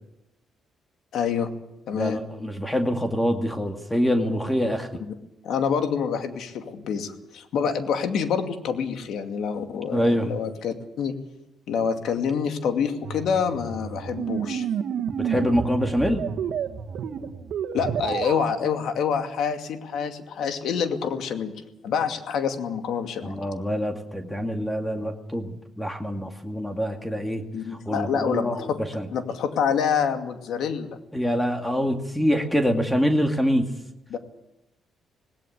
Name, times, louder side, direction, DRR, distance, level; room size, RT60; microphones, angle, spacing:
voice 1, 1.1-1.5 1.9-2.2 5.0-5.1 5.4-11.1 11.7-14.7 17.7-21.5 21.8-23.3 27.5-28.8 29.1-30.9 34.1-34.2, left 7 dB, 75° left, 6 dB, 2.4 m, -27 dB
voice 2, 1.9-5.0 9.9-10.3 15.2-16.3 23.2-27.4 27.9-29.1 31.1-33.7, equal, 5° left, 4 dB, 2.3 m, -25 dB
sound 1, 13.0-18.6, right 7 dB, 75° right, 1.7 m, -30 dB
19.0 x 17.5 x 8.2 m, 0.86 s
cardioid pair, 90°, 0 cm